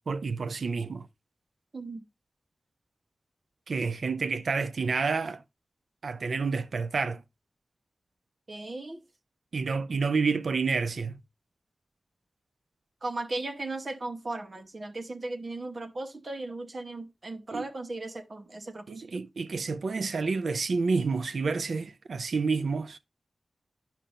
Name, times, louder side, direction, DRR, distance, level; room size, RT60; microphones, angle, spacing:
voice 1, 0.1-1.1 3.7-5.4 6.0-7.2 9.5-11.2 17.5-17.7 18.9-23.0, right 4 dB, 90° right, 0.5 m, -29 dB
voice 2, 1.7-2.0 8.5-9.0 13.0-19.2, right 2 dB, 50° right, 1.0 m, -37 dB
10.0 x 5.6 x 2.5 m
wide cardioid pair, 95°, 0 cm